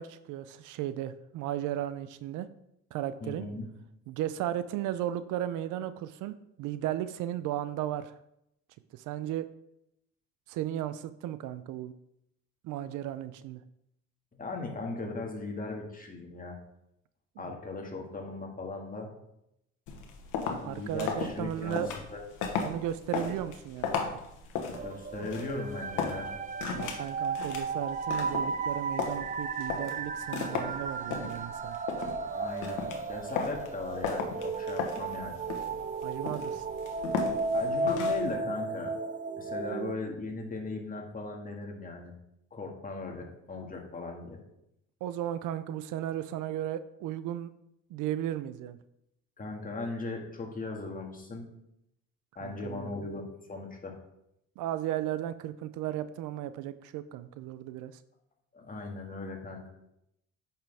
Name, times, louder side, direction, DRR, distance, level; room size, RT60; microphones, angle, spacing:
voice 1, 0.0-2.5 2.9-3.5 4.1-8.1 8.9-9.5 10.5-11.9 12.6-13.6 17.4-17.5 20.6-21.9 22.6-23.9 26.7-31.8 36.0-36.6 45.0-47.5 47.9-48.8 52.4-52.9 54.6-57.9, right 12 dB, 75° right, 14 dB, 0.5 m, -35 dB
voice 2, 3.2-3.7 14.3-16.6 17.4-19.1 20.6-21.8 22.1-22.2 24.8-26.3 32.3-32.8 33.1-35.4 37.5-39.0 39.3-42.1 42.5-44.4 49.4-51.5 52.4-53.2 53.5-54.0 58.5-59.7, left 3 dB, 25° left, 1 dB, 1.9 m, -38 dB
sound 1, 19.9-38.3, left 6 dB, 80° left, 1.3 m, -37 dB
sound 2, 24.7-39.9, right 3 dB, 25° right, 0.5 m, -34 dB
8.6 x 5.8 x 3.4 m, 0.81 s
cardioid pair, 90°, 31 cm